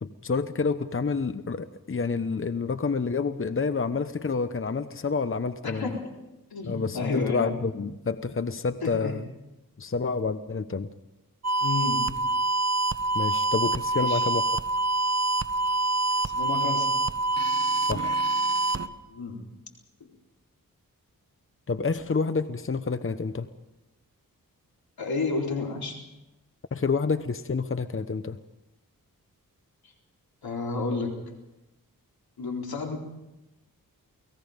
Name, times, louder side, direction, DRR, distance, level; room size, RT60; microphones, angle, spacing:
voice 1, 0.0-5.9 6.7-9.3 9.8-10.9 13.1-14.4 17.9-18.1 21.7-23.5 26.7-28.4, left 4 dB, 35° left, 11 dB, 0.9 m, -28 dB
voice 2, 5.6-6.0 6.5-7.4 8.8-9.1 11.6-12.0 13.9-14.2 16.2-16.9 19.1-19.4 25.0-26.0 30.4-31.1 32.4-33.0, left 3 dB, 85° left, 1 dB, 4.2 m, -31 dB
sound 1, 11.4-18.9, right 2 dB, 45° right, 1.3 m, -26 dB
29.5 x 19.5 x 5.2 m, 0.98 s
cardioid pair, 60°, 36 cm